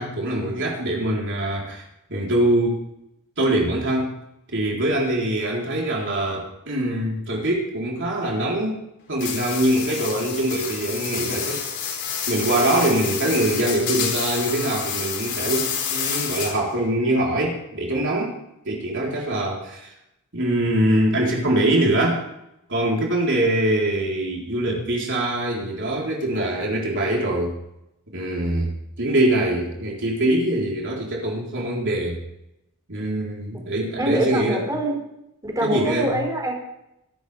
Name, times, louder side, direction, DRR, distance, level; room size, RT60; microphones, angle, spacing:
voice 1, 0.0-1.8 2.1-2.8 3.4-4.1 4.5-8.8 9.1-11.6 12.3-18.4 18.7-19.9 20.3-22.2 22.7-27.6 28.1-32.2 32.9-34.6 35.6-36.1, right 1 dB, 55° right, -2 dB, 4.0 m, -23 dB
sound 1, 9.2-16.8, left 7 dB, 55° left, 4.7 m, -29 dB
voice 2, 34.0-35.0 35.4-36.6, right 1 dB, 15° right, 0 dB, 4.6 m, -24 dB
23.0 x 12.5 x 3.5 m, 0.84 s
head